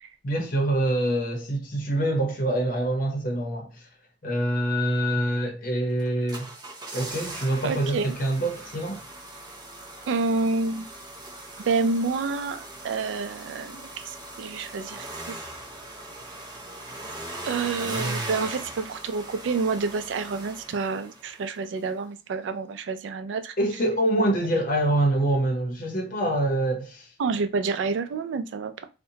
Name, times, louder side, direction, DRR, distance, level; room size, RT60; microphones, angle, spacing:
voice 1, 0.2-3.8 4.2-6.5 6.9-9.0 23.6-27.1, right 1 dB, 50° left, 0.7 m, -25 dB
sound 1, 6.0-21.5 21.8-21.9, right 2 dB, 25° right, 0.5 m, -39 dB
voice 2, 7.6-8.1 10.1-10.8 11.6-15.4 17.4-23.5 27.2-28.7, right 4 dB, 85° right, 0.3 m, -28 dB
2.7 x 2.1 x 2.7 m
head